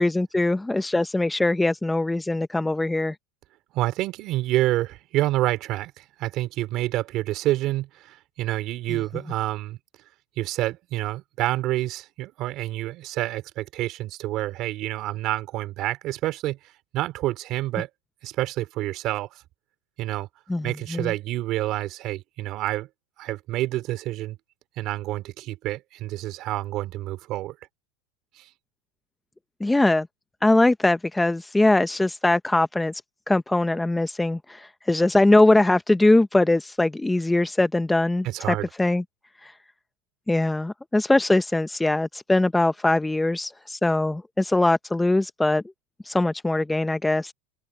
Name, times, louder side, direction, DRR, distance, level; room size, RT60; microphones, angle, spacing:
voice 1, 0.0-3.1 8.9-9.0 20.5-21.1 29.6-30.1 30.4-33.0 33.3-39.0 39.4-39.5 40.3-45.6 46.0-47.3, left 2 dB, 5° left, 0.7 m, -21 dB
voice 2, 3.7-9.8 10.4-16.6 16.9-17.9 18.2-19.4 20.0-20.3 20.6-22.9 23.2-24.4 24.8-27.5 28.4-28.5 38.2-38.7, right 16 dB, 45° right, 4.0 m, -28 dB
supercardioid pair, 130°, 0 cm